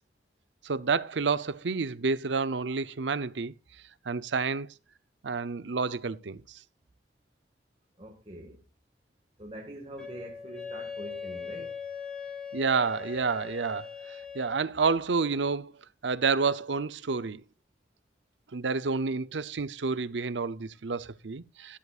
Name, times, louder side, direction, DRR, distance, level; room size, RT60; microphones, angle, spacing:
voice 1, 0.6-3.5 4.0-4.7 5.2-6.6 12.5-15.7 16.0-17.4 18.5-21.8, right 4 dB, 90° right, 0.7 m, -29 dB
voice 2, 8.0-8.6 9.4-11.8, right 1 dB, 30° right, 1.8 m, -44 dB
Wind instrument woodwind instrument, 10.0-14.6, left 6 dB, 5° left, 3.8 m, -40 dB
13.5 x 13.0 x 2.5 m
head